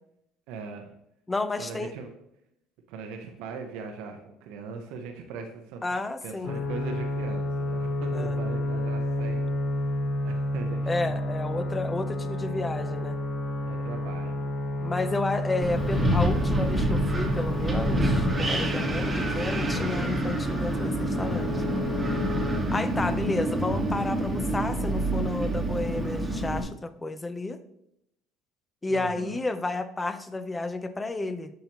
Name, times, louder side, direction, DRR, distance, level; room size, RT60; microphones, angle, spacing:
voice 1, 0.5-0.9 1.5-2.1 2.9-5.8 6.2-9.5 10.2-11.3 13.7-14.5 28.9-29.4, right 5 dB, 80° right, 4 dB, 0.8 m, -40 dB
voice 2, 1.3-1.9 5.8-6.5 8.1-8.4 10.9-13.2 14.8-21.5 22.7-27.6 28.8-31.5, left 2 dB, 15° left, 11 dB, 0.6 m, -31 dB
sound 1, 6.4-22.6, left 1 dB, 55° left, 1.2 m, -31 dB
Wind, 15.6-26.6, right 1 dB, 20° right, 1.3 m, -27 dB
7.6 x 5.6 x 2.9 m, 0.78 s
supercardioid pair, 100°, 0 cm